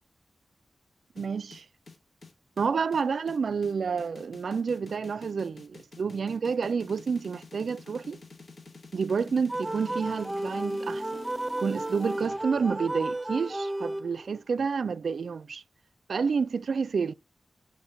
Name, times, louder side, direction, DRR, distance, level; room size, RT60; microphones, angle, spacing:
sound 1, 1.2-12.4, left 3 dB, 75° left, 1.4 m, -47 dB
voice 1, 1.2-1.7 2.6-8.2 8.9-11.2 11.6-15.6 16.1-17.1, right 5 dB, 75° right, 0.3 m, -29 dB
sound 2, 9.5-14.4, right 1 dB, 20° right, 0.7 m, -33 dB
5.7 x 5.0 x 5.0 m
cardioid pair, 45°, 0 cm